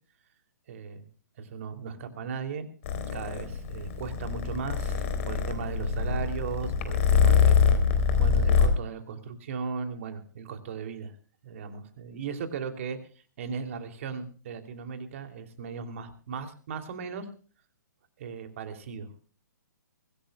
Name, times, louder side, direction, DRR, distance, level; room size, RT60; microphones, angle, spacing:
voice 1, 0.7-1.1 1.4-2.7 3.1-7.6 8.2-11.1 11.4-13.0 13.4-17.3 18.2-19.1, right 6 dB, 45° right, 8 dB, 2.9 m, -37 dB
Purr, 2.8-8.7, left 6 dB, 45° left, 3.7 m, -24 dB
24.0 x 17.0 x 2.3 m, 0.40 s
figure-of-eight pair, 125°, 10 cm